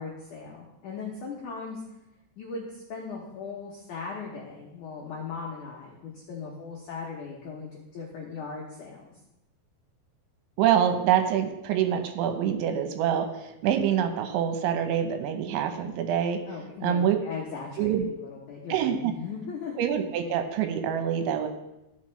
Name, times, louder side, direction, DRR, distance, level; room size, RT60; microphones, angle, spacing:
voice 1, 0.0-1.8 2.4-9.1 16.5-19.9, left 5 dB, 80° left, -2 dB, 1.8 m, -38 dB
voice 2, 10.6-16.4 16.8-17.2 17.8-18.1 18.7-19.1 19.8-21.5, right 9 dB, 80° right, 6 dB, 3.1 m, -25 dB
14.5 x 5.7 x 3.2 m, 0.94 s
omnidirectional pair, 5.3 m